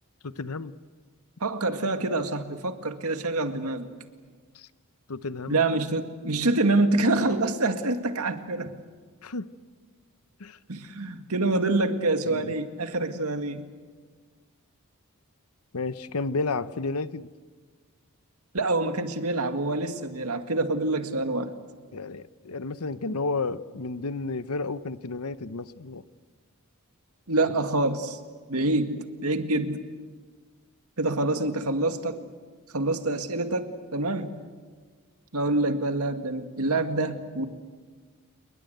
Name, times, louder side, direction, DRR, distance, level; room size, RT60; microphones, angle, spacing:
voice 1, 0.2-0.7 4.5-4.7 5.1-5.6 9.2-9.5 10.4-10.6 12.3-12.5 15.7-17.3 21.9-26.0, left 3 dB, 90° left, 14 dB, 0.9 m, -32 dB
voice 2, 1.4-3.9 5.5-8.7 10.7-13.7 18.5-21.5 27.3-28.2 28.5-29.9 31.0-32.2 32.7-34.4 35.3-37.5, right 2 dB, 90° right, 7 dB, 2.0 m, -26 dB
29.0 x 22.0 x 8.0 m, 1.5 s
head